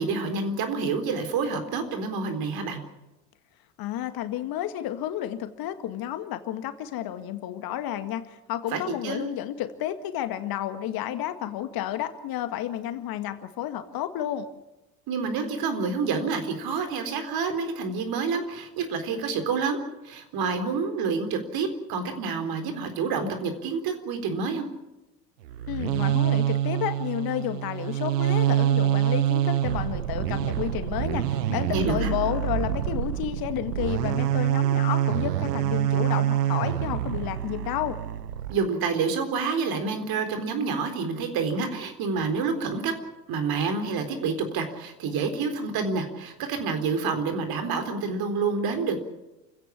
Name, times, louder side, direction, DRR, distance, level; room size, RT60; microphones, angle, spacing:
voice 1, 0.0-2.8 8.7-9.3 15.1-24.7 31.7-32.1 38.5-42.9 43.3-49.0, right 4 dB, 45° right, 7 dB, 4.0 m, -28 dB
voice 2, 3.8-14.5 25.7-38.0, left 12 dB, 45° left, 9 dB, 1.9 m, -31 dB
sound 1, 25.4-38.5, right 12 dB, 70° right, 1.1 m, -26 dB
29.0 x 16.5 x 7.3 m, 1.0 s
figure-of-eight pair, 75°, 50 cm